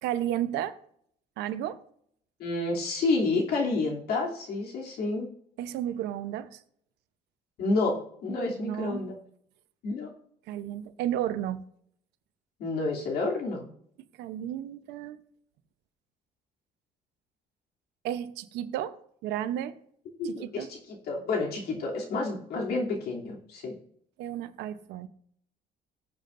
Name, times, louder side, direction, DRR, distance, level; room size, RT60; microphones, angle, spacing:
voice 1, 0.0-0.8 1.4-1.8 5.6-6.6 8.6-9.1 10.5-11.6 14.2-15.2 18.0-19.0 19.2-19.8 20.2-20.7 24.2-25.1, right 11 dB, 90° right, 0.8 m, -32 dB
voice 2, 2.4-5.3 7.6-9.2 9.8-10.1 12.6-13.7 20.2-23.8, left 3 dB, 70° left, 3.0 m, -29 dB
19.0 x 7.2 x 2.6 m
cardioid pair, 110°, 17 cm